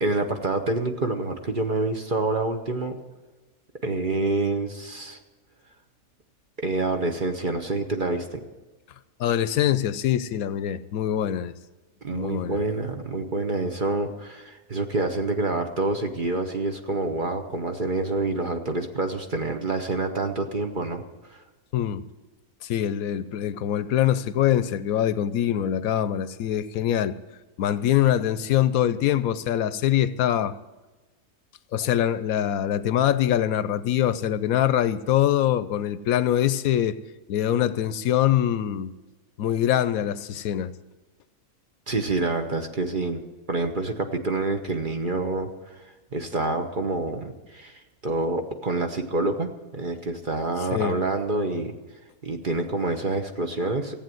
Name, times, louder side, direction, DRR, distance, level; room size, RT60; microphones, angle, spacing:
voice 1, 0.0-3.0 3.8-5.2 6.6-8.4 12.0-21.0 21.3-21.4 41.9-43.2 43.5-45.8 46.1-51.8 52.2-54.0, right 2 dB, 40° right, 1.1 m, -27 dB
voice 2, 9.2-11.5 12.1-12.6 21.7-22.0 22.6-27.2 27.6-30.5 31.7-37.0 37.3-38.9 39.4-40.7 50.7-51.0, left 11 dB, 75° left, 1.0 m, -23 dB
15.0 x 8.7 x 7.7 m
omnidirectional pair, 1.5 m